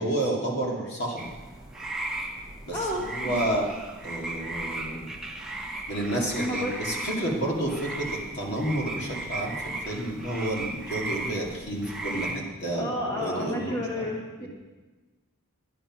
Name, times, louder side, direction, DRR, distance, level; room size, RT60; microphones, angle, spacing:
voice 1, 0.0-1.3 2.6-3.7 4.0-5.1 5.9-13.8 14.4-14.5, right 1 dB, 50° left, -1 dB, 2.3 m, -30 dB
sound 1, 1.2-12.4, right 2 dB, ahead, 1.1 m, -36 dB
voice 2, 2.7-3.4 6.2-6.8 12.7-14.5, left 1 dB, 15° left, -2 dB, 1.5 m, -31 dB
11.0 x 10.0 x 6.0 m, 1.2 s
head